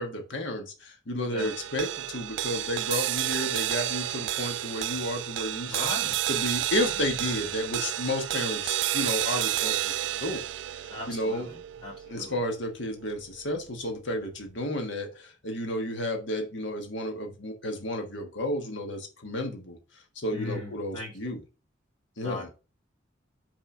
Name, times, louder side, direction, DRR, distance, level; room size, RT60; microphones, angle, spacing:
voice 1, 0.0-5.8 6.3-11.5 12.1-19.8 20.1-21.4 22.2-22.5, left 1 dB, 75° left, 4 dB, 1.4 m, -32 dB
sound 1, 1.4-13.9, right 14 dB, 70° right, 0.3 m, -31 dB
voice 2, 5.7-6.2 10.9-12.4 20.3-21.1 22.2-22.5, left 2 dB, 25° left, -4 dB, 1.9 m, -38 dB
5.9 x 3.6 x 5.4 m, 0.32 s
head